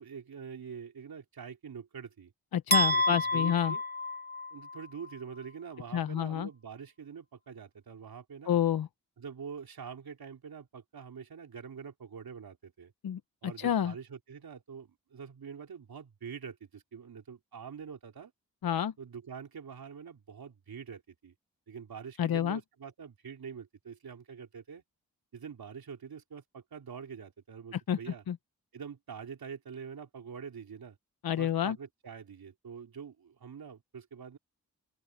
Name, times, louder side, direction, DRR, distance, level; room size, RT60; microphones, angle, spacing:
voice 1, 0.0-2.3 2.9-3.8 4.5-8.6 9.2-12.9 13.4-18.3 19.0-21.3 21.7-24.8 25.3-28.2 28.7-31.0 31.4-34.4, right 6 dB, 80° right, 3.8 m, -45 dB
voice 2, 2.5-3.7 5.9-6.5 8.5-8.9 13.0-13.9 18.6-18.9 22.2-22.6 27.7-28.0 28.3-28.4 31.2-31.8, left 9 dB, 80° left, 0.9 m, -29 dB
sound 1, 2.7-4.8, left 2 dB, 25° left, 3.3 m, -29 dB
open air
cardioid pair, 40°, 36 cm